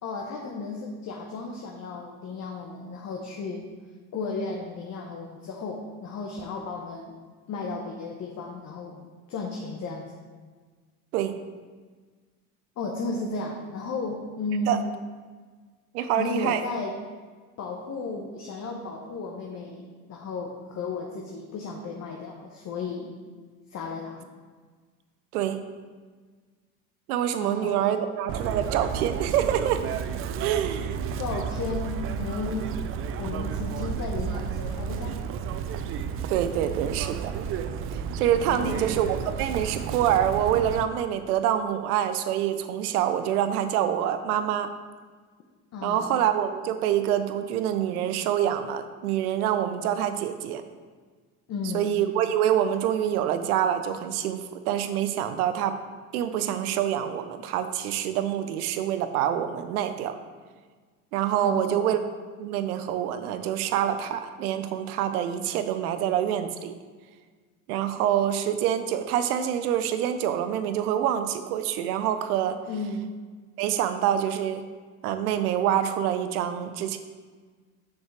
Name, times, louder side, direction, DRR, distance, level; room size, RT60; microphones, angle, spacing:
voice 1, 0.0-3.6 4.1-7.2 7.5-9.0 9.3-10.1 12.8-14.9 16.2-16.9 17.6-23.1 23.7-24.3 27.4-28.0 31.2-32.9 33.2-35.2 38.5-39.0 45.7-46.2 51.5-52.0 61.4-61.9 72.7-73.2, left 3 dB, 35° left, 0 dB, 0.9 m, -34 dB
voice 2, 15.9-16.6 25.3-25.6 27.1-29.8 30.4-31.0 36.3-37.3 38.2-44.7 45.8-50.6 51.7-55.8 56.1-60.2 61.1-62.0 62.4-66.7 67.7-72.6 73.6-74.7 75.0-77.0, right 10 dB, 75° right, 9 dB, 0.7 m, -26 dB
Chirp tweet, 28.3-40.8, right 7 dB, 30° right, 0.4 m, -32 dB
7.1 x 6.2 x 3.3 m, 1.5 s
hypercardioid pair, 75°, 45 cm